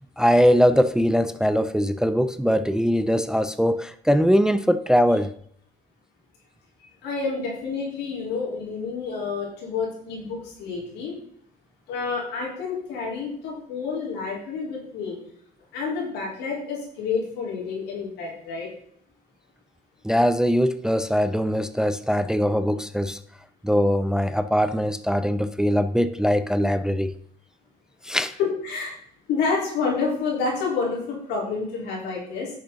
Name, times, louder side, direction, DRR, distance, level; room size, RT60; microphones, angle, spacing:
voice 1, 0.2-5.3 20.0-23.2 23.6-27.1 28.0-28.3, equal, 5° right, 0.4 m, -21 dB
voice 2, 7.0-11.2 11.9-15.2 15.7-18.7 28.4-28.9 29.3-32.5, left 4 dB, 85° left, 4.0 m, -29 dB
10.0 x 6.7 x 3.9 m
cardioid pair, 110°, 17 cm